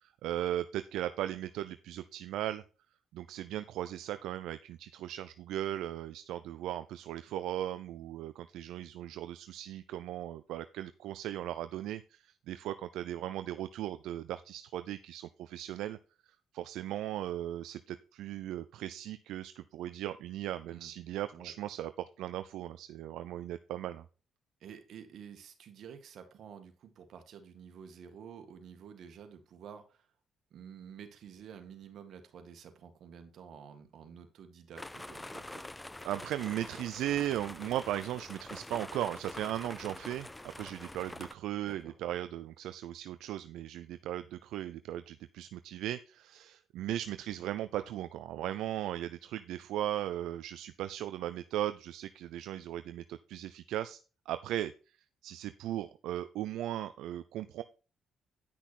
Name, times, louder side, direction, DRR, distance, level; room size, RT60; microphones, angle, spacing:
voice 1, 0.0-2.6 3.1-16.0 16.5-24.1 36.0-40.3 40.6-54.0 54.3-54.7 55.2-57.6, right 12 dB, 90° right, 11 dB, 0.5 m, -37 dB
voice 2, 24.6-30.1 30.5-35.7 41.7-41.9, right 7 dB, 70° right, 7 dB, 2.0 m, -50 dB
sound 1, 34.8-41.3, left 1 dB, 10° left, 0.5 m, -46 dB
10.0 x 6.1 x 4.3 m, 0.34 s
cardioid pair, 90°, 0 cm